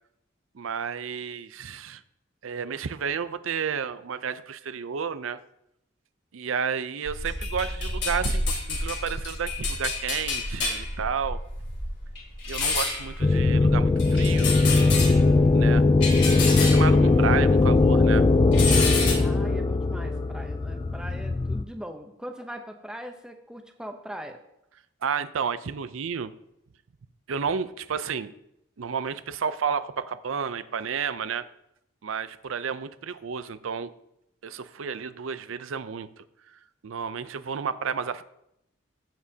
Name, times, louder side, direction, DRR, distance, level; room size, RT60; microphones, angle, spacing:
voice 1, 0.5-2.0 2.4-5.4 6.3-8.4 8.7-11.4 12.5-14.5 15.5-15.8 16.5-18.3 25.0-26.3 27.3-28.3 28.8-31.4 32.0-33.9 34.4-36.2 36.8-38.2, right 6 dB, 80° right, 14 dB, 0.5 m, -31 dB
sound 1, 7.0-17.9 18.1-19.1, left 3 dB, 55° left, 2.8 m, -30 dB
sound 2, 13.2-21.6, left 3 dB, 25° left, 0.3 m, -20 dB
voice 2, 19.2-24.4, equal, 5° right, 4 dB, 0.7 m, -40 dB
15.0 x 7.3 x 2.8 m, 0.81 s
head